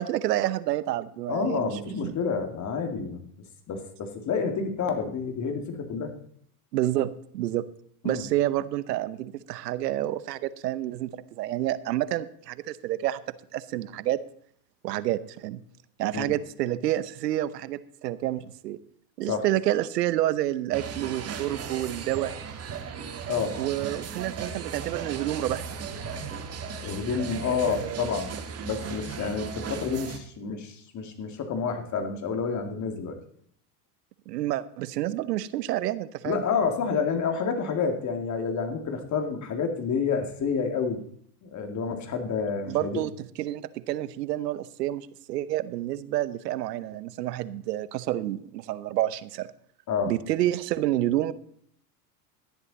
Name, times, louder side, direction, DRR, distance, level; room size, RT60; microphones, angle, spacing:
voice 1, 0.0-2.2 6.7-7.7 8.0-13.2 13.5-14.2 14.8-15.6 16.0-18.8 19.2-22.3 23.6-25.7 27.5-28.1 34.3-36.4 42.7-43.1 43.4-49.5 50.1-51.3, right 14 dB, 85° right, 16 dB, 0.9 m, -29 dB
voice 2, 1.3-3.3 3.7-6.1 8.0-8.2 16.1-16.3 19.3-19.5 23.3-23.6 26.8-28.3 28.6-33.2 36.2-41.0 41.4-43.0 49.9-50.1, left 5 dB, 35° left, 6 dB, 2.4 m, -29 dB
sound 1, 20.7-30.2, right 6 dB, 30° right, 1.8 m, -36 dB
13.0 x 10.5 x 4.1 m, 0.63 s
supercardioid pair, 105°, 48 cm